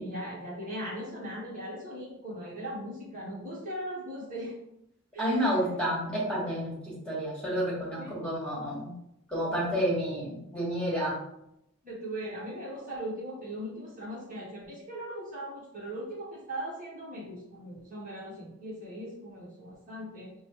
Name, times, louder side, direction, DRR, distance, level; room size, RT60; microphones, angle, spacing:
voice 1, 0.0-4.5 5.1-5.6 8.0-8.1 11.8-20.3, equal, 40° right, -5 dB, 1.2 m, -39 dB
voice 2, 5.2-8.9 9.3-11.2, equal, 5° left, -7 dB, 1.6 m, -30 dB
6.2 x 2.2 x 3.1 m, 0.82 s
head